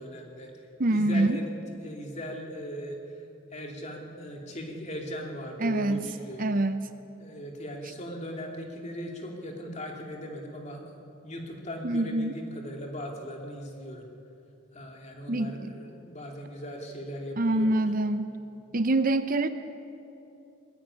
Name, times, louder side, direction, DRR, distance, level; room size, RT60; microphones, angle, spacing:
voice 1, 0.0-1.5 1.8-3.0 3.5-6.5 7.2-10.8 11.2-14.1 14.7-17.9 19.4-19.5, equal, 30° left, 1 dB, 2.7 m, -39 dB
voice 2, 0.8-1.4 5.6-6.0 6.4-6.9 11.8-12.4 15.3-15.7 17.4-18.3 18.7-19.5, right 2 dB, 40° right, 10 dB, 0.6 m, -25 dB
20.5 x 16.0 x 9.9 m, 2.8 s
head